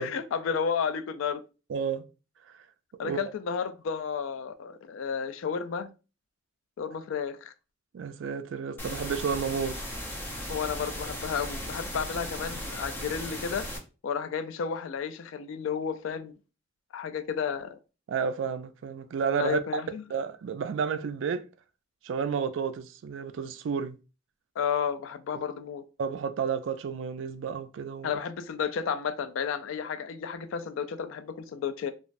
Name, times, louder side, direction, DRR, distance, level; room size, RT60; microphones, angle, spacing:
voice 1, 0.0-1.4 3.0-5.9 6.8-7.5 10.5-13.7 14.0-16.3 16.9-17.8 19.4-20.0 24.6-25.8 28.0-31.9, left 6 dB, 80° left, 0.3 m, -32 dB
voice 2, 1.7-2.0 3.0-3.2 7.9-9.8 18.1-19.8 20.1-21.4 22.0-24.0 25.3-25.4 26.0-28.2, right 6 dB, 70° right, 0.3 m, -31 dB
sound 1, 8.8-13.8, left 1 dB, 10° left, 0.5 m, -37 dB
3.0 x 2.4 x 2.5 m
head